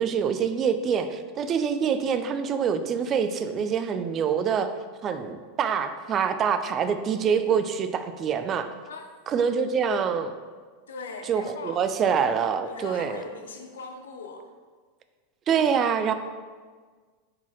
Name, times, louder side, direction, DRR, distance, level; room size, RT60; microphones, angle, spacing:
voice 1, 0.0-4.7 5.0-8.7 9.3-10.3 11.3-13.2 15.5-16.1, right 7 dB, 35° right, 9 dB, 0.3 m, -25 dB
voice 2, 10.9-11.8 12.6-14.5, left 3 dB, 80° left, 3 dB, 0.5 m, -40 dB
4.7 x 3.9 x 2.9 m, 1.5 s
hypercardioid pair, 95°, 0 cm